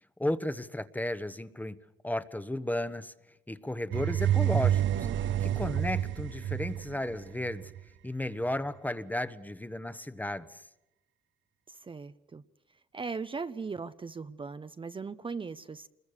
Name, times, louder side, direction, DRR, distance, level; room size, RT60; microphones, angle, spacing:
voice 1, 0.2-1.8 2.0-3.1 3.5-5.1 5.4-7.7 8.0-10.6, left 1 dB, 10° left, 1.1 m, -34 dB
sound 1, 3.9-7.8, right 11 dB, 70° right, 1.1 m, -29 dB
voice 2, 11.7-12.4 12.9-15.9, right 4 dB, 25° right, 0.7 m, -38 dB
26.0 x 21.5 x 6.7 m
cardioid pair, 90°, 20 cm